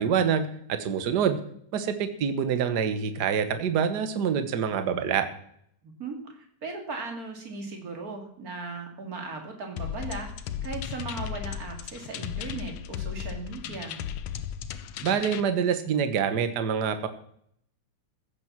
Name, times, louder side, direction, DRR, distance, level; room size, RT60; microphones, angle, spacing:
voice 1, 0.0-1.4 1.7-5.3 15.0-17.1, right 7 dB, 55° right, 9 dB, 1.2 m, -26 dB
voice 2, 5.8-14.0, right 4 dB, 30° right, 3 dB, 2.7 m, -38 dB
sound 1, 9.8-15.4, left 10 dB, 70° left, 1.8 m, -35 dB
15.0 x 7.8 x 7.4 m, 0.68 s
omnidirectional pair, 3.4 m